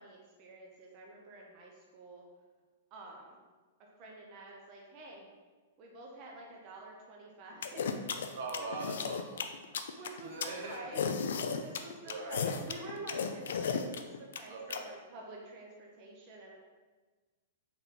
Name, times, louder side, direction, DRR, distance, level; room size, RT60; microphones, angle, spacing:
voice 1, 0.0-2.3 2.9-3.5 4.0-5.3 5.8-7.9 8.2-8.9 9.9-11.2 11.6-16.5, right 2 dB, 35° right, -2 dB, 0.6 m, -49 dB
sound 1, 7.6-14.8, left 6 dB, 80° left, 0.3 m, -34 dB
voice 2, 8.3-9.4 10.2-10.8 12.0-12.5 14.5-14.9, right 3 dB, 65° right, 1 dB, 0.8 m, -41 dB
3.9 x 2.9 x 3.7 m, 1.3 s
hypercardioid pair, 155°, 0 cm